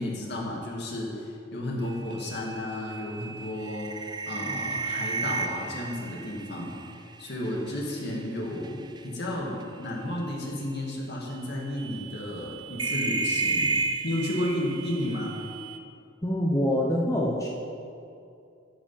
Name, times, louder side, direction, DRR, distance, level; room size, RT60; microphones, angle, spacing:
voice 1, 0.0-6.7 7.2-13.8 14.0-15.4, left 1 dB, 60° left, -2 dB, 2.1 m, -32 dB
sound 1, 1.9-8.2 8.6-9.0 10.1-10.3 10.8-10.9 11.8-15.8, right 3 dB, 20° right, 0.5 m, -33 dB
voice 2, 16.2-17.5, left 1 dB, 15° left, -3 dB, 0.9 m, -25 dB
13.5 x 5.1 x 7.0 m, 2.5 s
head